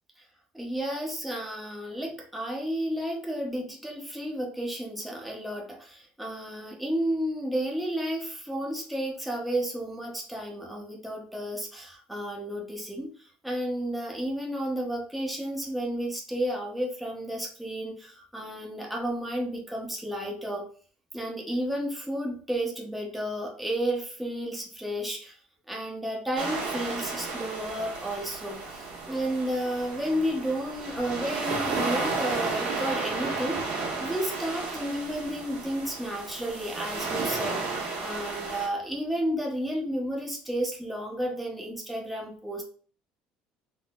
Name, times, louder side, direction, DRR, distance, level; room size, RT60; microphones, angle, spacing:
voice 1, 0.5-20.6 21.1-25.4 25.7-42.6, right 1 dB, ahead, -1 dB, 0.6 m, -32 dB
sound 1, 26.4-38.7, right 3 dB, 80° right, 1.3 m, -33 dB
3.7 x 2.6 x 2.3 m, 0.43 s
cardioid pair, 160°, 3 cm